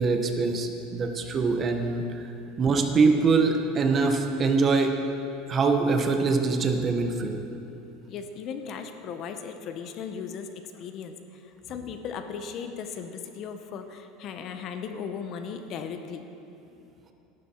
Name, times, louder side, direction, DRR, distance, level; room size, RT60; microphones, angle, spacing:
voice 1, 0.0-2.3 2.6-5.0 5.5-7.4, right 4 dB, 25° right, 5 dB, 0.8 m, -24 dB
voice 2, 8.1-16.3 16.8-16.9, left 6 dB, 35° left, 7 dB, 0.7 m, -37 dB
13.5 x 12.0 x 4.3 m, 2.8 s
supercardioid pair, 160°, 0 cm